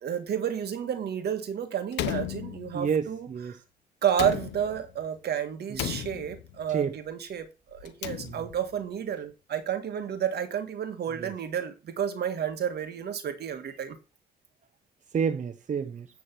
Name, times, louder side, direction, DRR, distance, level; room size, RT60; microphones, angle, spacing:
voice 1, 0.0-3.3 4.0-14.0, right 9 dB, 65° right, 1.6 m, -31 dB
Slam, 1.9-3.1 4.1-5.0 5.7-6.6 7.8-8.7, left 13 dB, 85° left, 0.6 m, -35 dB
voice 2, 2.7-3.6 5.7-6.1 6.7-7.0 8.2-8.4 11.2-11.3 15.1-16.1, right 6 dB, 45° right, 0.7 m, -30 dB
9.8 x 3.6 x 6.0 m
supercardioid pair, 60°, 18 cm